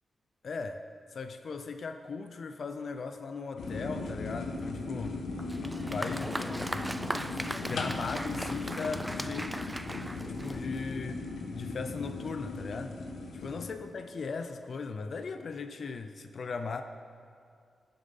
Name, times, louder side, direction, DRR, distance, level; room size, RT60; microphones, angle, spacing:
voice 1, 0.4-0.8 1.1-5.3 5.9-11.3 11.5-12.9 13.3-16.8, left 4 dB, 55° left, 7 dB, 0.5 m, -38 dB
sound 1, 3.6-13.7, left 3 dB, 85° left, 1.2 m, -37 dB
Applause, 5.4-10.9, right 1 dB, 10° right, 0.4 m, -38 dB
20.0 x 7.6 x 5.4 m, 2.3 s
wide cardioid pair, 135°, 0 cm